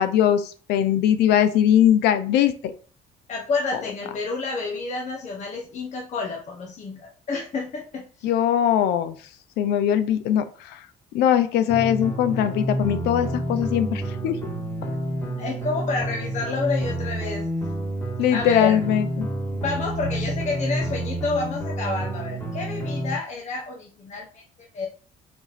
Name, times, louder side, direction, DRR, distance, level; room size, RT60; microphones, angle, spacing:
voice 1, 0.0-2.7 8.2-9.2 9.6-10.8 11.1-14.5 18.2-19.3, left 10 dB, 85° left, 11 dB, 0.6 m, -21 dB
voice 2, 3.3-8.0 15.4-17.5 18.3-18.8 19.5-24.4 24.7-24.9, left 3 dB, 45° left, 0 dB, 0.9 m, -29 dB
sound 1, 11.7-23.2, right 1 dB, 15° left, 1.6 m, -29 dB
4.4 x 2.9 x 4.1 m, 0.40 s
cardioid pair, 110°, 17 cm